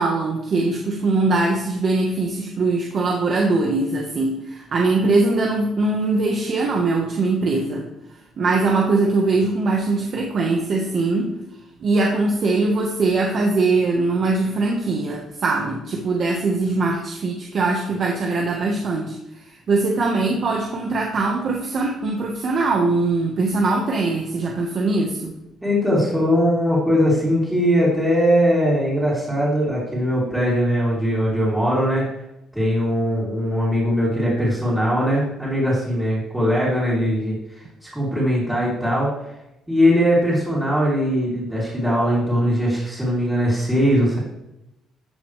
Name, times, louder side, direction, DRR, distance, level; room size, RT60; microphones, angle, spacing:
voice 1, 0.0-7.9 8.4-11.4 11.8-19.2 19.5-25.3, right 3 dB, 45° right, 0 dB, 1.3 m, -21 dB
voice 2, 25.6-32.0 32.5-39.1 39.7-44.2, equal, 5° right, -10 dB, 3.2 m, -20 dB
13.5 x 6.7 x 3.3 m, 0.86 s
cardioid pair, 145°, 0 cm